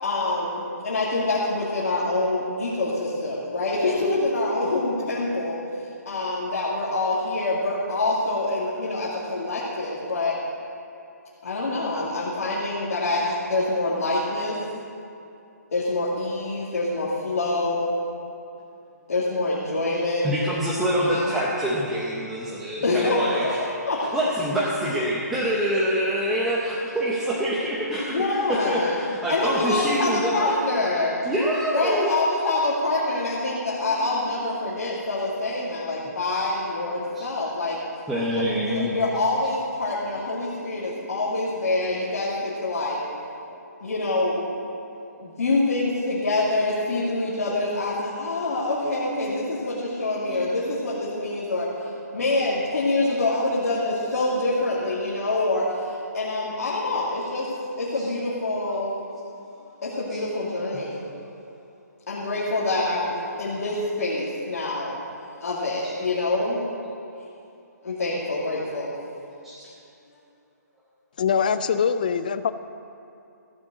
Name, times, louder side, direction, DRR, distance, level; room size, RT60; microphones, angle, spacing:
voice 1, 0.0-5.6 6.1-10.4 11.4-14.6 15.7-18.0 19.1-20.3 21.0-21.3 22.8-24.2 28.1-31.2 31.7-37.8 38.3-43.0 43.8-44.4 45.2-51.7 52.1-57.5 57.8-59.0 59.8-61.0 62.1-64.9 65.4-66.6 67.8-68.9, left 2 dB, 55° left, -7 dB, 2.5 m, -26 dB
voice 2, 20.2-23.6 24.1-30.5 31.2-32.1 34.8-34.9 37.1-37.3 38.1-38.9 40.7-41.1 43.5-44.0 47.4-47.6 48.8-49.4 50.3-50.6 55.0-55.1 58.7-58.8 60.1-60.2 65.9-66.0 69.4-69.5, equal, 5° right, -7 dB, 0.7 m, -26 dB
voice 3, 71.2-72.5, left 7 dB, 30° left, 13 dB, 0.4 m, -23 dB
15.0 x 7.5 x 7.6 m, 2.7 s
hypercardioid pair, 170°, 9 cm